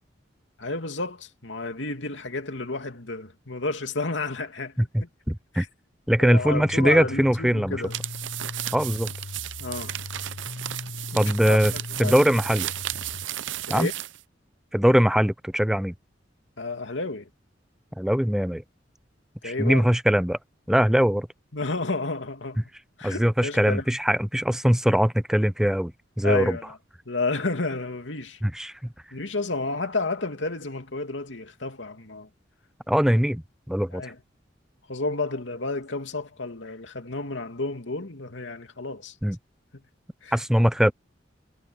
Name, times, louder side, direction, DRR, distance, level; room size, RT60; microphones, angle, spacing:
voice 1, 0.6-5.1 5.5-5.7 6.2-8.0 9.6-10.0 11.1-12.2 13.7-13.9 16.6-17.3 19.4-19.9 21.5-22.7 23.0-23.8 26.2-26.8 27.0-28.4 29.1-32.3 33.9-34.2 34.9-39.2 39.7-39.8 40.2-40.4, left 3 dB, 85° left, 2.7 m, -31 dB
voice 2, 5.3-5.6 6.1-7.8 8.7-9.1 11.1-11.7 12.0-12.7 13.7-13.9 14.7-15.9 18.0-18.6 19.4-20.4 20.7-21.3 23.0-25.9 26.2-26.6 28.4-28.7 32.9-34.0 39.2-39.4 40.3-40.9, equal, 5° right, 0.5 m, -21 dB
sound 1, 6.4-13.3, left 3 dB, 70° left, 0.9 m, -39 dB
sound 2, 7.8-14.2, right 13 dB, 85° right, 0.6 m, -34 dB
head